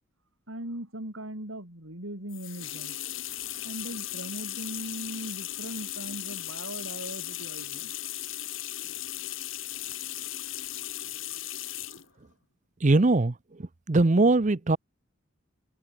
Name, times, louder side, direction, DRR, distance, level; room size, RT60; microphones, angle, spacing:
voice 1, 0.5-3.0 3.6-7.9, right 1 dB, 90° right, 7.4 m, -39 dB
sound 1, 2.3-12.1, left 13 dB, 75° left, 3.1 m, -37 dB
voice 2, 12.8-14.8, right 2 dB, 40° right, 0.7 m, -22 dB
head